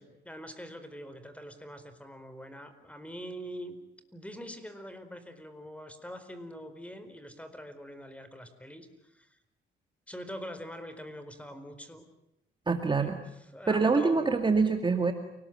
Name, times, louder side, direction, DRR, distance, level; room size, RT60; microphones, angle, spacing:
voice 1, 0.0-3.8 4.1-9.4 10.1-12.1 12.8-14.3, equal, 5° left, 10 dB, 4.4 m, -44 dB
voice 2, 12.7-13.2 13.7-15.1, right 4 dB, 25° right, 6 dB, 2.2 m, -25 dB
29.0 x 19.5 x 9.2 m, 0.86 s
cardioid pair, 90°, 20 cm